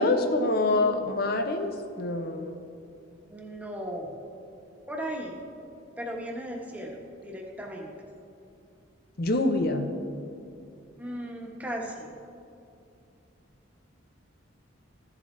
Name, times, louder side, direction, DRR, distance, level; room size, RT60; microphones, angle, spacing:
voice 1, 0.0-1.7 2.0-2.6 9.2-9.8, left 2 dB, 45° left, 6 dB, 0.7 m, -25 dB
voice 2, 3.3-4.1 4.9-5.4 6.0-7.9 11.0-12.1, equal, 10° right, -2 dB, 1.1 m, -36 dB
15.0 x 7.5 x 3.2 m, 2.6 s
head